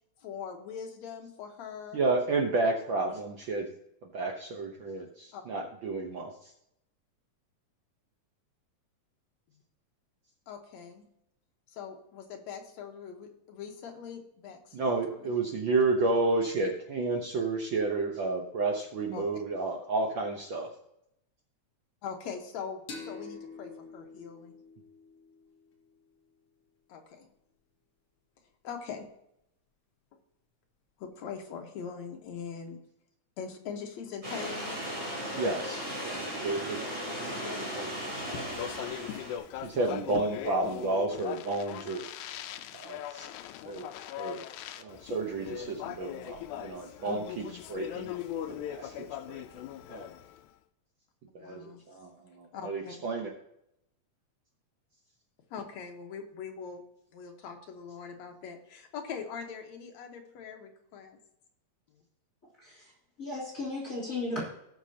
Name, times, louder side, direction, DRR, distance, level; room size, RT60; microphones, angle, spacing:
voice 1, 0.2-2.0 3.1-3.2 5.3-5.4 10.5-11.0 11.7-15.3 19.1-19.2 22.0-24.6 26.9-27.3 28.6-29.1 31.0-32.8 33.4-34.8 48.1-48.2 51.4-51.8 52.5-52.9 55.5-56.8 57.1-61.2 61.9-62.0, left 6 dB, 70° left, 3 dB, 2.5 m, -42 dB
voice 2, 1.9-3.7 4.0-6.5 14.7-20.7 35.4-36.8 37.7-37.9 38.3-38.5 39.6-42.1 42.7-43.3 43.7-43.8 44.2-44.4 44.8-48.1 48.7-48.9 49.3-49.4 49.9-50.1 51.3-51.6 51.9-53.3, right 3 dB, 65° right, 1 dB, 1.2 m, -31 dB
sound 1, 22.9-26.2, left 4 dB, 50° left, 2.7 m, -47 dB
sound 2, 34.2-39.4, equal, 20° right, 4.5 m, -36 dB
Speech, 38.0-50.4, left 11 dB, 90° left, 2.0 m, -40 dB
voice 3, 62.6-62.9 63.2-64.4, left 2 dB, 25° left, -6 dB, 3.4 m, -35 dB
18.0 x 6.5 x 2.8 m, 0.78 s
omnidirectional pair, 3.4 m